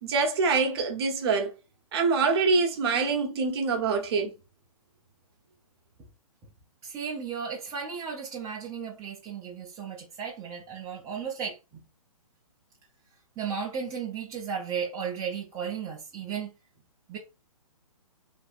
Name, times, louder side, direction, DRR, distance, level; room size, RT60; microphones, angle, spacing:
voice 1, 0.0-1.5 1.9-4.3, right 4 dB, 45° right, 0.9 m, -25 dB
voice 2, 6.8-11.8 13.4-16.5 17.1-17.2, right 7 dB, 15° right, 0.6 m, -35 dB
3.5 x 2.6 x 2.4 m
hypercardioid pair, 135°, 19 cm